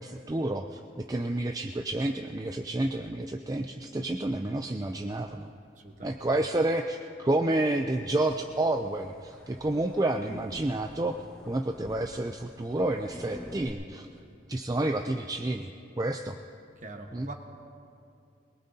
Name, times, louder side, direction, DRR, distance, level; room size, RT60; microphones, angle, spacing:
voice 1, 0.0-5.5 6.0-11.2 11.5-14.1 14.5-15.7 16.0-16.4 17.1-17.3, right 1 dB, 20° right, 4 dB, 0.4 m, -29 dB
voice 2, 5.8-6.3 16.8-17.3, right 2 dB, 40° right, 4 dB, 1.2 m, -43 dB
sound 1, 8.3-13.7, equal, 5° left, 1.2 m, -48 dB
22.5 x 21.0 x 2.8 m, 2.5 s
head